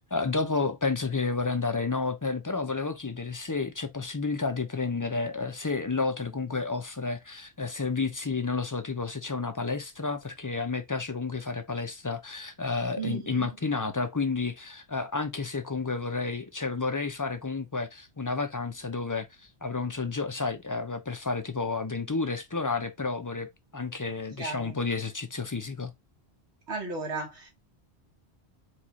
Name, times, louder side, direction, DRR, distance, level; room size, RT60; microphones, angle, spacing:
voice 1, 0.1-19.3 19.6-25.9, left 4 dB, 25° left, 0.4 m, -31 dB
voice 2, 13.0-13.6 24.4-24.8 26.7-27.5, right 4 dB, 85° right, 1.8 m, -35 dB
4.7 x 2.4 x 4.1 m
omnidirectional pair, 1.1 m